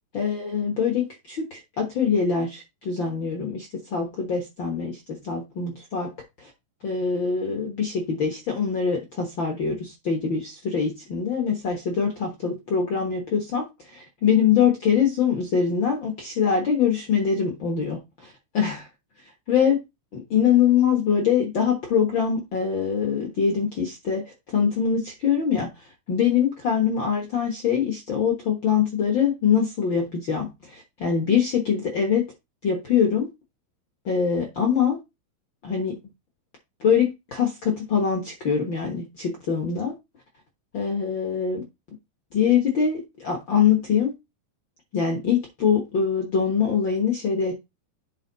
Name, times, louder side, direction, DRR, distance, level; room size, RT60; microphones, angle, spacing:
voice 1, 0.1-6.1 6.4-6.5 6.8-18.9 19.5-19.8 20.1-25.7 26.1-32.3 32.6-33.3 34.0-35.0 35.6-36.0 36.8-39.9 40.7-41.6 42.3-44.1 44.9-47.5, left 7 dB, 65° left, 1.2 m, -23 dB
9.3 x 3.8 x 4.0 m
omnidirectional pair, 4.3 m